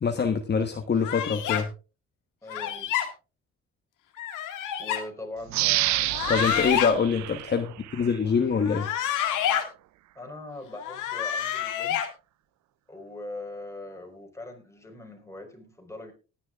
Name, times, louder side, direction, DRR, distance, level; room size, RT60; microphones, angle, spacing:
voice 1, 0.0-1.7 6.3-8.9, left 5 dB, 35° left, 7 dB, 1.1 m, -25 dB
sound 1, 1.0-1.6 2.5-3.1 4.2-5.0 6.0-6.9 8.6-9.6 10.8-12.1, left 10 dB, 90° left, 1.9 m, -28 dB
voice 2, 2.4-2.9 4.8-6.1 10.1-12.0 12.9-16.1, left 2 dB, 10° left, 2 dB, 4.4 m, -41 dB
sound 2, 5.5-8.2 8.7-8.8, right 17 dB, 70° right, 0.4 m, -29 dB
19.0 x 10.0 x 2.4 m, 0.33 s
cardioid pair, 90°, 30 cm